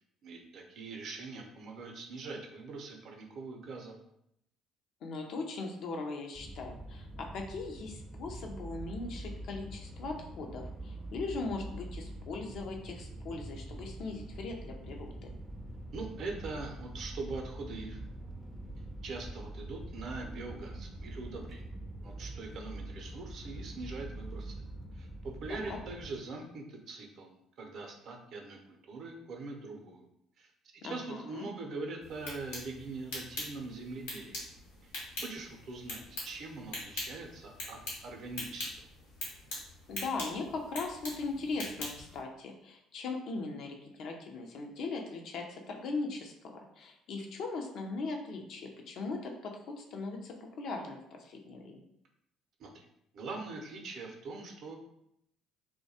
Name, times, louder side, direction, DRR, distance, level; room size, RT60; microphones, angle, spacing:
voice 1, 0.2-3.9 15.9-18.0 19.0-21.6 22.0-24.5 24.9-30.1 30.4-34.5 34.8-34.9 35.2-38.9 52.6-52.9 53.1-54.8, right 3 dB, 60° right, 2 dB, 0.5 m, -42 dB
voice 2, 5.0-15.3 25.5-25.8 30.8-31.5 39.9-51.8, left 3 dB, 65° left, 2 dB, 0.4 m, -39 dB
sound 1, 6.4-26.1, right 1 dB, ahead, 0.4 m, -44 dB
sound 2, 32.0-42.2, left 1 dB, 85° left, 0.9 m, -43 dB
2.3 x 2.1 x 2.7 m, 0.77 s
hypercardioid pair, 60°, 0 cm